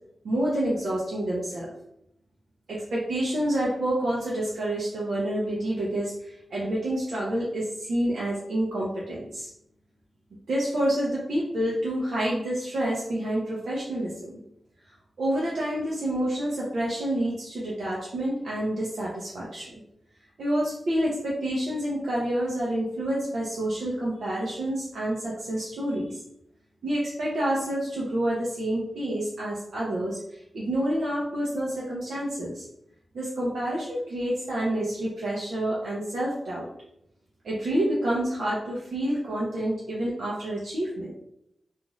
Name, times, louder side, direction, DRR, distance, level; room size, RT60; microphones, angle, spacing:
voice 1, 0.2-1.7 2.7-9.5 10.5-14.4 15.2-19.7 20.4-26.2 26.8-32.7 33.1-36.7 37.4-41.1, right 1 dB, 90° right, -6 dB, 0.6 m, -28 dB
2.6 x 2.4 x 3.0 m, 0.77 s
wide cardioid pair, 100°, 0 cm